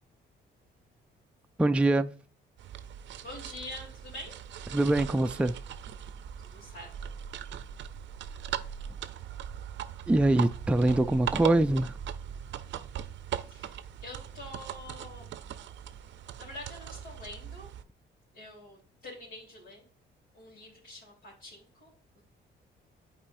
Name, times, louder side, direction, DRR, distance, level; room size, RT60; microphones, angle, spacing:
voice 1, 1.6-2.1 4.7-5.5 10.1-12.0, right 2 dB, 5° right, 0.3 m, -24 dB
sound 1, 2.6-17.8, right 9 dB, 70° right, 0.5 m, -40 dB
voice 2, 3.2-4.4 6.4-7.1 13.5-15.3 16.4-17.7 18.3-19.8 20.3-22.2, left 1 dB, 85° left, 3.2 m, -46 dB
8.7 x 4.3 x 2.6 m
cardioid pair, 90°, 20 cm